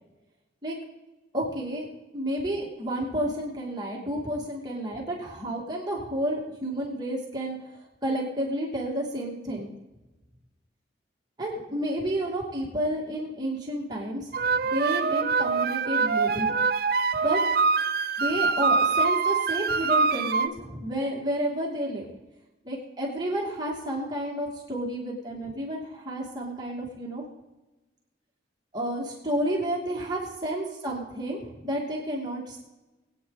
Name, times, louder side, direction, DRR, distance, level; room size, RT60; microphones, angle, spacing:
voice 1, 1.3-1.9 2.1-7.6 8.0-9.7 11.4-16.5 17.2-17.4 18.2-22.1 22.6-27.2 28.7-31.4 31.6-32.6, right 1 dB, 20° right, -3 dB, 2.5 m, -31 dB
sound 1, 14.3-20.5, right 4 dB, 55° right, 0.6 m, -24 dB
22.0 x 9.0 x 4.1 m, 1.1 s
head